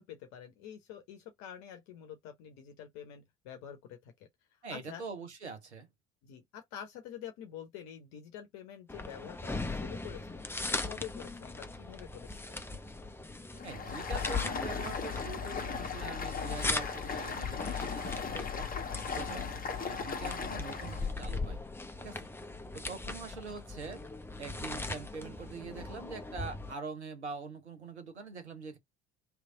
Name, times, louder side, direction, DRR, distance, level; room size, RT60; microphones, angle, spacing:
voice 1, 0.0-4.1 4.5-5.0 6.2-12.6, left 9 dB, 55° left, 0.9 m, -47 dB
voice 2, 4.6-5.9 13.6-18.7 19.1-21.6 22.0-22.3 22.7-24.0 24.4-28.8, right 4 dB, 85° right, 1.0 m, -44 dB
sound 1, 8.9-26.7, left 2 dB, 5° left, 0.8 m, -40 dB
Stream, 13.5-21.1, left 6 dB, 25° left, 1.1 m, -37 dB
3.3 x 3.2 x 3.7 m
figure-of-eight pair, 55°, 33 cm